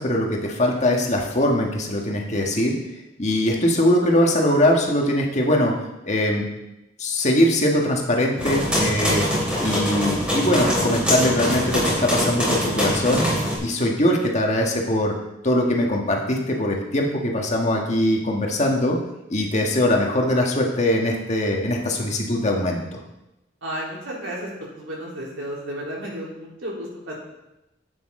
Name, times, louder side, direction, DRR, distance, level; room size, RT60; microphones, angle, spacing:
voice 1, 0.0-2.8 3.2-5.7 6.0-6.5 7.0-9.2 9.6-13.3 13.6-15.2 15.4-19.0 19.3-23.0, left 1 dB, 35° left, 0 dB, 1.6 m, -21 dB
sound 1, 8.4-13.6, equal, 5° right, 4.0 m, -23 dB
voice 2, 23.6-24.5 24.8-27.1, right 1 dB, 85° right, -4 dB, 3.6 m, -32 dB
11.5 x 8.7 x 3.8 m, 0.92 s
head